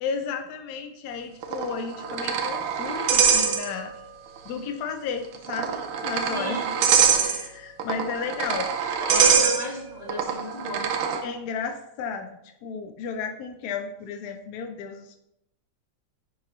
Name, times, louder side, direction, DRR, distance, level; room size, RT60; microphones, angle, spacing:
voice 1, 0.0-3.9 4.5-6.6 7.2-9.4 11.2-15.2, left 6 dB, 75° left, 6 dB, 0.9 m, -33 dB
sound 1, 1.4-4.1 4.4-4.5 5.3-11.2, right 7 dB, 85° right, 1.5 m, -24 dB
voice 2, 6.3-6.7 8.9-10.8, left 1 dB, 20° left, -7 dB, 1.2 m, -34 dB
9.6 x 3.9 x 3.0 m, 0.82 s
omnidirectional pair, 2.2 m